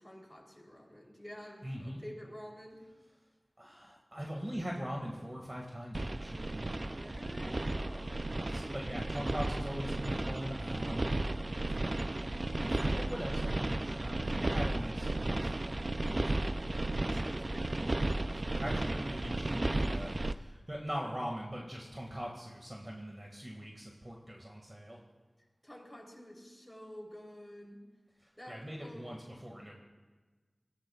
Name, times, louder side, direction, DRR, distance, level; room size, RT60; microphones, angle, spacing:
voice 1, 0.0-2.8 6.8-8.3 8.6-9.1 16.5-18.2 25.6-27.8 28.4-29.1, equal, 10° left, -1 dB, 3.5 m, -50 dB
voice 2, 1.6-2.0 3.6-6.6 8.5-11.2 12.6-16.3 18.5-25.0 28.5-29.8, equal, 25° right, -1 dB, 2.0 m, -41 dB
sound 1, 5.9-20.3, right 2 dB, 45° right, 0.5 m, -34 dB
23.5 x 16.5 x 2.4 m, 1.3 s
wide cardioid pair, 60°, 0 cm